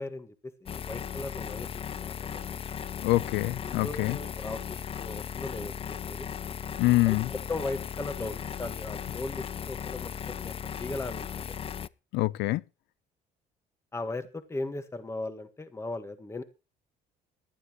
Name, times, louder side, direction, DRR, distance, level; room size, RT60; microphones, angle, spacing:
voice 1, 0.0-2.5 3.6-6.3 7.0-11.5 13.9-16.4, left 2 dB, 15° left, 1.5 m, -38 dB
sound 1, 0.7-11.9, left 8 dB, 35° left, 0.6 m, -37 dB
voice 2, 3.0-4.2 6.8-7.3 12.1-12.6, left 19 dB, 85° left, 0.6 m, -25 dB
19.5 x 12.0 x 3.1 m
cardioid pair, 110°, 17 cm